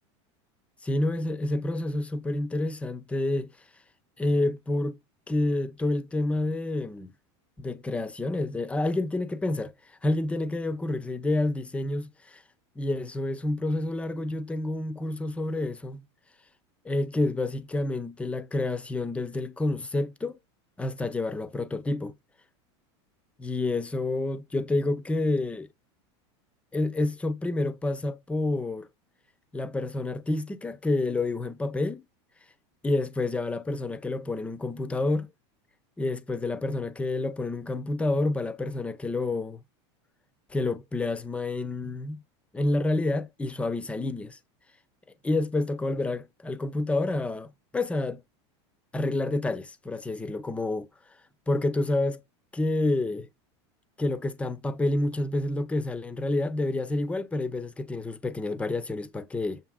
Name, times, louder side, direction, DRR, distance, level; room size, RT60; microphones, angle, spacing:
voice 1, 0.8-3.5 4.2-5.0 5.3-7.1 7.6-12.4 12.8-16.0 16.8-20.4 20.8-22.1 23.4-25.7 26.7-28.9 29.5-32.0 32.8-35.3 36.0-39.6 40.5-42.2 42.5-44.4 45.2-48.2 48.9-50.9 51.5-52.2 52.5-53.3 54.0-59.6, left 2 dB, 10° left, 0.5 m, -28 dB
7.1 x 2.7 x 2.3 m
supercardioid pair, 130°, 15 cm